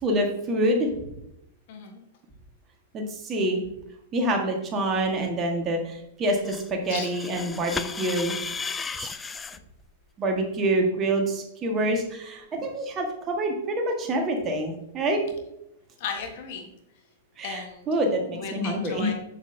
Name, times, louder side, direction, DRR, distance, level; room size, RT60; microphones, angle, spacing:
voice 1, 0.0-0.9 2.9-3.6 4.1-8.3 9.0-9.1 10.2-15.2 17.4-17.6 17.9-19.1, right 1 dB, 25° right, 2 dB, 1.6 m, -26 dB
voice 2, 1.7-2.0 6.9-7.1 16.0-16.7 17.4-17.9 18.4-19.1, left 6 dB, 50° left, 3 dB, 1.4 m, -35 dB
sound 1, 6.3-9.6, left 5 dB, 15° left, 0.4 m, -34 dB
7.6 x 7.1 x 2.8 m, 0.81 s
figure-of-eight pair, 100°, 0 cm